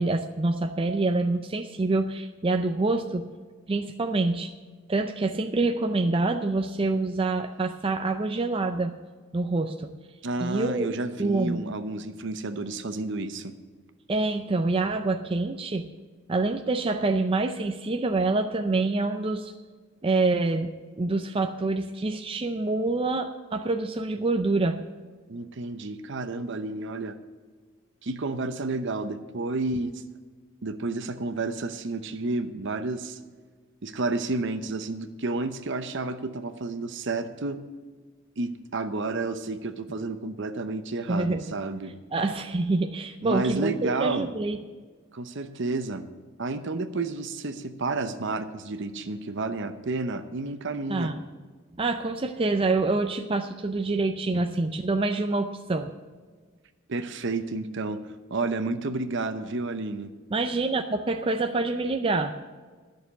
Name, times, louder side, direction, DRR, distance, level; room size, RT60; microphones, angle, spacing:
voice 1, 0.0-3.3 3.7-4.5 4.9-8.9 9.3-9.9 10.4-10.9 11.2-11.6 14.1-15.9 16.3-19.5 20.0-20.7 21.0-24.8 41.1-41.5 42.1-44.6 50.9-51.2 51.8-55.9 60.3-62.3, right 3 dB, 25° right, 6 dB, 0.5 m, -26 dB
voice 2, 10.2-13.5 25.3-27.2 28.0-29.9 30.6-33.2 33.8-37.6 38.4-42.3 43.2-44.3 45.1-46.0 46.4-51.1 56.9-58.0 58.3-60.1, right 3 dB, 60° right, 10 dB, 0.8 m, -31 dB
11.5 x 6.6 x 8.1 m, 1.5 s
head